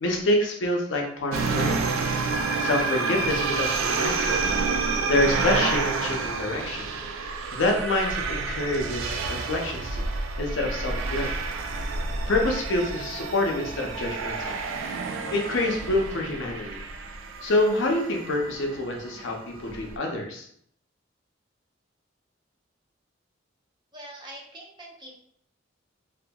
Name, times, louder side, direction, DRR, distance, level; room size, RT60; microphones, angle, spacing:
voice 1, 0.0-1.9 2.6-4.5 5.0-6.9 7.2-10.0 10.4-11.4 12.3-14.6 15.3-16.8 17.4-19.3 19.6-20.5, left 2 dB, 70° left, 1 dB, 0.5 m, -27 dB
sound 1, 1.3-20.0, right 4 dB, 85° right, 0.3 m, -29 dB
sound 2, 10.5-16.5, equal, 50° right, 1.3 m, -45 dB
voice 2, 23.9-25.2, right 1 dB, 20° right, -3 dB, 0.5 m, -43 dB
2.7 x 2.4 x 2.2 m, 0.65 s
head